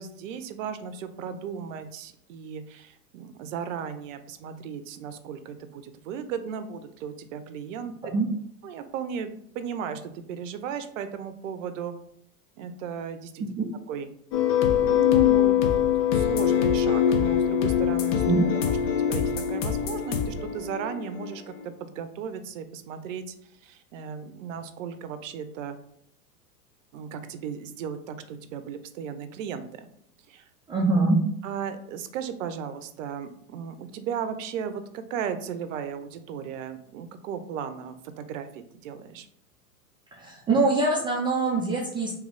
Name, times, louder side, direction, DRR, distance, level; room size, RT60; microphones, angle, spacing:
voice 1, 0.0-7.9 8.6-11.9 12.6-13.5 13.9-14.1 14.8-15.7 16.1-18.4 19.0-23.2 23.6-25.8 26.9-29.7 30.3-30.4 31.4-39.3, right 7 dB, 55° right, 10 dB, 0.6 m, -36 dB
sound 1, 14.3-21.7, left 9 dB, 55° left, 0.8 m, -23 dB
voice 2, 30.7-31.2 40.2-42.1, right 3 dB, 10° right, -3 dB, 0.4 m, -23 dB
3.2 x 3.0 x 3.7 m, 0.70 s
hypercardioid pair, 110°, 45 cm